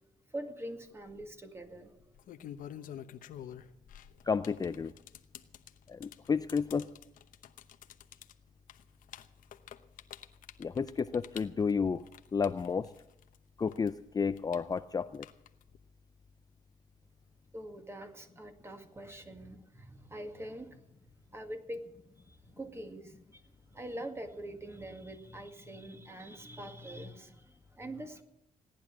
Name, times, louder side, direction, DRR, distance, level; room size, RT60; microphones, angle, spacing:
voice 1, 0.3-2.0 17.5-20.8 21.3-21.9 22.2-28.2, right 1 dB, 20° right, 6 dB, 2.1 m, -44 dB
sound 1, 0.9-1.3 2.0-13.4 13.7-15.8, left 10 dB, 80° left, 0.9 m, -49 dB
voice 2, 4.3-4.9 5.9-6.9 10.6-12.0 12.3-12.9 13.6-15.3, left 5 dB, 30° left, 12 dB, 0.5 m, -31 dB
17.5 x 10.5 x 7.6 m, 0.83 s
cardioid pair, 95°, 14 cm